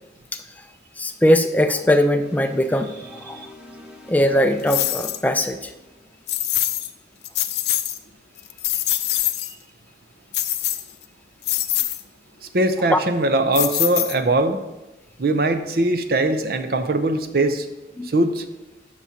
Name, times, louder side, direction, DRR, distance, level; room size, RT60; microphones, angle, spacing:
voice 1, 1.0-2.9 3.2-3.4 4.1-5.7 12.9-13.0 18.0-18.1, left 1 dB, 10° left, 7 dB, 0.4 m, -19 dB
sound 1, 2.2-6.5, left 2 dB, 5° right, 1.0 m, -44 dB
sound 2, 4.7-5.2 6.3-6.9 7.2-8.0 8.4-9.5 10.3-11.0 11.4-12.0 13.5-14.4, left 14 dB, 65° left, 0.5 m, -24 dB
voice 2, 12.5-14.6 15.2-17.7 18.0-18.4, right 2 dB, 55° right, 9 dB, 0.6 m, -21 dB
13.0 x 6.1 x 2.8 m, 1.0 s
head